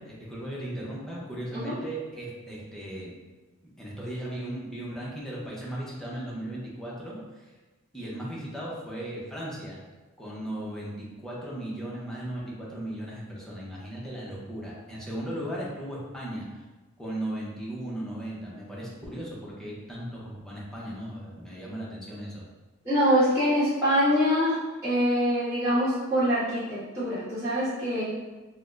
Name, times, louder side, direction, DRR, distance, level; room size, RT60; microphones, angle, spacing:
voice 1, 0.0-3.1 3.8-7.5 7.9-9.8 10.2-16.6 17.0-22.4, right 1 dB, 5° left, -6 dB, 0.7 m, -37 dB
voice 2, 22.8-28.0, equal, 20° right, -15 dB, 1.4 m, -24 dB
4.1 x 2.1 x 2.4 m, 1.2 s
head